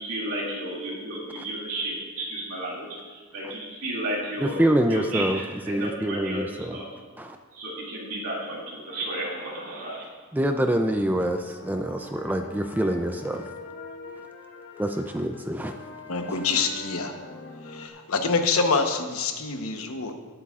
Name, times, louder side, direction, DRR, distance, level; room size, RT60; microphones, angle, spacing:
voice 1, 0.0-4.6 4.9-6.8 7.5-10.1, right 1 dB, 70° right, -7 dB, 2.4 m, -33 dB
voice 2, 4.4-5.4 5.7-6.8 7.2-7.4 10.3-13.4 14.8-15.7 16.3-16.4, right 1 dB, 10° right, 6 dB, 0.4 m, -26 dB
sound 1, 11.4-17.9, left 2 dB, 55° left, 1.1 m, -43 dB
voice 3, 16.1-17.1 17.7-20.1, left 4 dB, 80° left, 5 dB, 1.0 m, -26 dB
18.5 x 8.1 x 2.4 m, 1.5 s
head